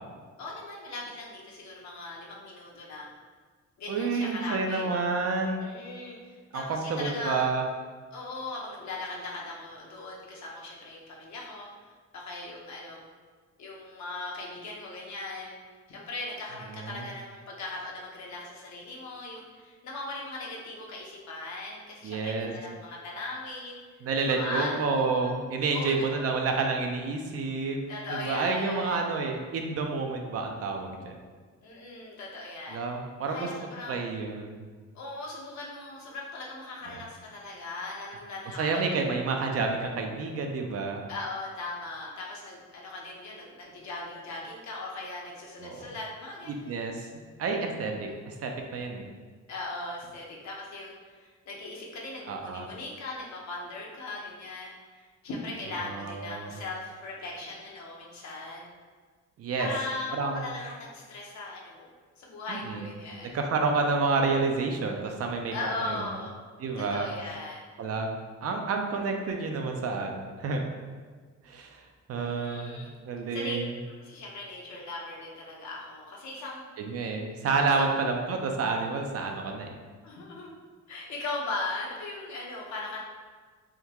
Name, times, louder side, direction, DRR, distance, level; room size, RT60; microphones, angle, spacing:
voice 1, 0.4-3.1 3.8-4.9 5.6-7.5 8.1-11.7 12.1-13.0 13.6-15.6 15.9-23.8 24.2-25.3 25.7-26.3 27.9-29.0 31.6-32.8 33.3-34.1 34.9-39.1 41.1-46.8 47.8-48.1 49.5-58.7 59.6-63.4 65.5-66.3 66.8-67.7 72.2-72.9 73.3-73.6 73.9-76.6 77.8-77.9 80.0-80.6 80.9-83.0, left 2 dB, 65° left, -3 dB, 0.8 m, -39 dB
voice 2, 3.9-5.7 6.5-7.6 16.7-17.0 22.0-22.5 24.0-27.8 28.1-31.2 32.7-33.5 33.9-34.6 38.6-41.0 45.6-45.8 46.5-47.1 47.4-49.0 52.3-52.7 55.8-56.5 59.4-59.7 60.1-60.4 62.5-62.9 63.2-65.5 65.8-66.0 66.6-67.1 67.8-68.1 68.4-70.6 71.4-71.8 72.1-73.7 76.8-79.7, right 4 dB, 55° right, 3 dB, 0.5 m, -29 dB
3.5 x 2.2 x 2.9 m, 1.5 s
cardioid pair, 90°, 30 cm